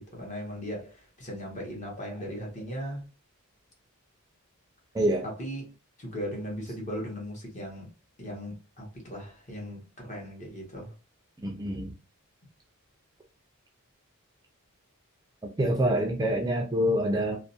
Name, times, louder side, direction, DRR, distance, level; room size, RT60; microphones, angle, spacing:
voice 1, 0.0-3.0 5.2-5.6 6.0-7.9 8.2-10.9, equal, 35° left, 0.9 m, -38 dB
voice 2, 11.4-11.9 15.6-17.4, equal, 15° right, 0.3 m, -26 dB
2.4 x 2.0 x 2.6 m
head